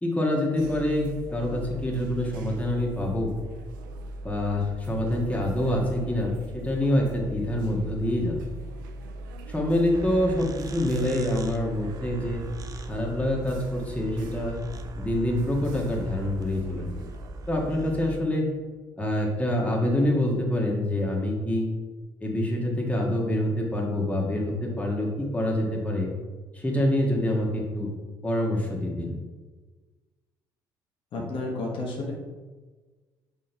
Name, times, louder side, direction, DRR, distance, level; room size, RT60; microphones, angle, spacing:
voice 1, 0.0-3.3 4.2-8.4 9.5-12.4 12.9-14.6 15.0-17.1 17.5-18.5 19.0-21.7 22.2-26.1 26.5-27.9 28.2-29.1, left 1 dB, 15° left, -1 dB, 1.7 m, -26 dB
sound 1, 0.5-18.2, right 1 dB, 85° right, 0.5 m, -40 dB
sound 2, 9.9-18.2, right 3 dB, 35° right, 0.7 m, -43 dB
voice 2, 31.1-32.1, left 2 dB, 55° left, -2 dB, 1.3 m, -31 dB
6.4 x 3.8 x 4.5 m, 1.3 s
hypercardioid pair, 55°, 11 cm